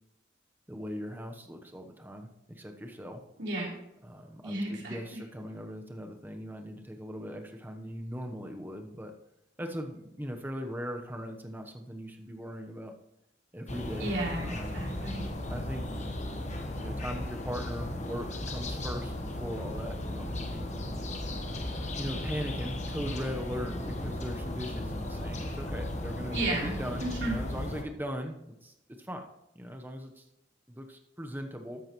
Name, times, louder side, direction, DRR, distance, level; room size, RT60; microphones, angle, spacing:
voice 1, 0.7-3.2 4.0-9.1 9.6-12.9 13.5-14.1 14.4-14.8 15.5-16.1 16.8-20.7 22.0-29.3 29.5-30.2 30.7-31.8, equal, 10° right, 4 dB, 1.0 m, -39 dB
voice 2, 3.4-3.7 4.4-5.2 14.0-15.3 26.3-26.8 27.0-27.4, right 2 dB, 70° right, -4 dB, 3.7 m, -33 dB
sound 1, 13.7-27.8, left 1 dB, 40° left, 1.3 m, -36 dB
12.5 x 8.6 x 3.1 m, 0.86 s
head